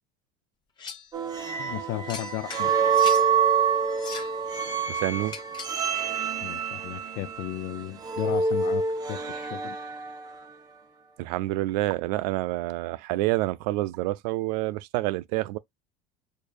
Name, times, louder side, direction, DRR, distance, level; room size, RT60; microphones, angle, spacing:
sound 1, 0.8-1.1 2.1-3.3 3.9-4.4 5.3-5.8, left 6 dB, 20° left, 0.9 m, -39 dB
sound 2, 1.1-10.4, right 6 dB, 20° right, 0.9 m, -27 dB
voice 1, 1.6-2.7 6.4-8.8 9.1-9.8, left 16 dB, 50° left, 0.4 m, -34 dB
voice 2, 4.9-5.4 11.2-15.6, right 18 dB, 85° right, 0.5 m, -28 dB
6.6 x 2.7 x 2.5 m
cardioid pair, 170°, 20 cm